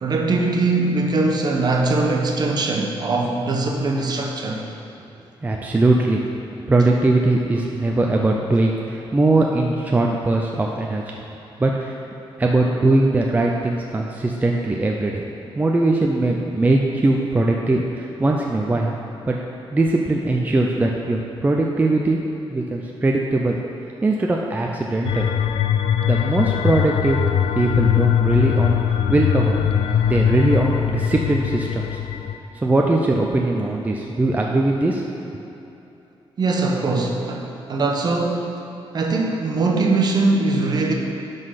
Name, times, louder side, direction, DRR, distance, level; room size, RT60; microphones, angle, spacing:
voice 1, 0.0-4.6 36.4-38.6 38.9-40.9, right 3 dB, 45° right, 1 dB, 0.9 m, -21 dB
voice 2, 5.4-6.2 6.7-11.2 11.6-12.0 12.4-15.2 15.6-18.9 19.3-19.4 19.7-22.2 22.5-23.6 24.0-25.3 26.0-27.2 27.5-28.8 29.1-29.6 30.0-32.0 32.5-35.1, right 2 dB, 15° right, 0 dB, 0.4 m, -20 dB
sound 1, 25.0-32.4, left 9 dB, 75° left, 0.4 m, -21 dB
10.0 x 4.0 x 5.7 m, 2.9 s
wide cardioid pair, 135°, 10 cm